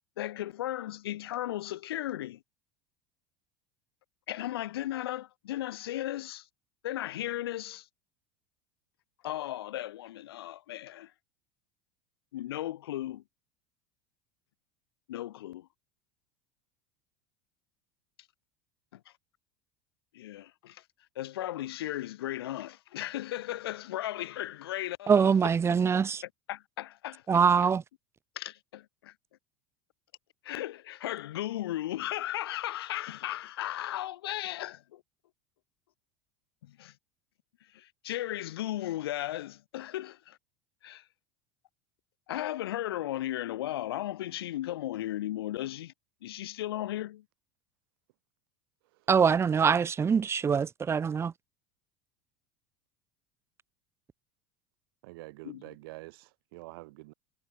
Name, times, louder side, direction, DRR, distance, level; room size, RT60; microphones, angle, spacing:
voice 1, 0.2-2.4 4.3-6.5 6.8-7.9 9.2-11.1 12.3-13.2 15.1-15.7 18.9-19.1 20.1-20.8 21.1-25.3 26.5-27.4 28.3-29.1 30.4-35.0 36.6-36.9 37.6-40.4 40.8-41.1 42.3-45.9 46.2-47.2 55.4-55.7, left 14 dB, 85° left, 1.5 m, -36 dB
voice 2, 25.1-26.2 27.3-27.8 49.1-51.3, right 6 dB, 20° right, 0.4 m, -24 dB
voice 3, 55.0-57.1, right 22 dB, 75° right, 3.6 m, -47 dB
hypercardioid pair, 90°, 12 cm